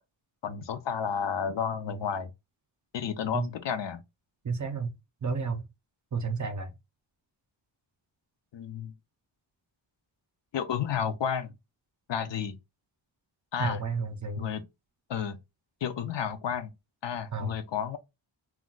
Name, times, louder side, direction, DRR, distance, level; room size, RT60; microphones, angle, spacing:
voice 1, 0.4-2.3 2.9-4.0 8.5-8.9 10.5-11.5 12.1-12.6 13.5-13.8 14.4-14.7 15.1-15.4 15.8-16.7 17.0-18.0, left 7 dB, 65° left, 0.5 m, -31 dB
voice 2, 4.4-4.9 5.2-5.6 6.1-6.7 13.6-14.5 17.3-17.5, right 4 dB, 40° right, 0.5 m, -31 dB
2.3 x 2.2 x 3.8 m
wide cardioid pair, 135°, 48 cm